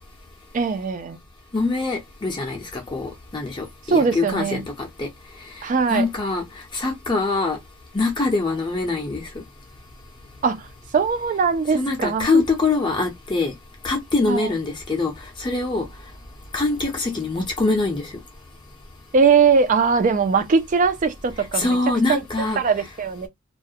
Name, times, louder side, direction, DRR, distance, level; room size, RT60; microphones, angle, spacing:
voice 1, 0.5-1.2 3.9-4.6 5.6-6.1 10.4-10.7 10.9-12.4 14.3-14.5 19.1-21.7 22.1-22.2 22.6-23.3, right 5 dB, 35° right, 0.3 m, -20 dB
voice 2, 1.5-4.6 5.0-5.1 5.9-6.4 6.7-7.6 7.9-9.2 11.7-13.5 13.8-15.1 15.4-15.8 16.5-18.1 21.5-22.6, left 3 dB, 20° left, 0.5 m, -23 dB
2.3 x 2.1 x 2.6 m
head